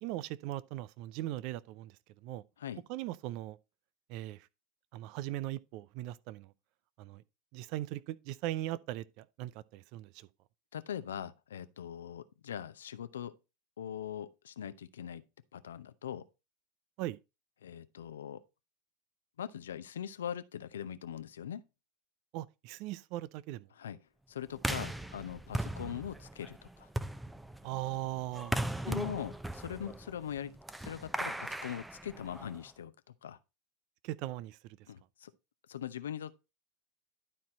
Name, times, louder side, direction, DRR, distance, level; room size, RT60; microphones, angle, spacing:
voice 1, 0.0-2.0 2.2-2.4 2.9-3.6 4.1-4.5 4.9-6.5 7.0-7.2 7.5-10.3 17.0-17.2 22.3-23.7 27.6-28.6 34.0-34.8, right 15 dB, 55° right, 0.5 m, -39 dB
voice 2, 10.7-13.3 13.8-15.2 15.5-16.2 17.6-18.4 19.4-21.6 23.7-24.0 24.3-26.9 28.8-32.9 33.2-33.4 34.9-35.3 35.7-36.3, left 9 dB, 80° left, 0.7 m, -41 dB
sound 1, 24.6-32.7, right 1 dB, 5° right, 0.7 m, -38 dB
12.0 x 4.3 x 4.1 m
hypercardioid pair, 85°, 0 cm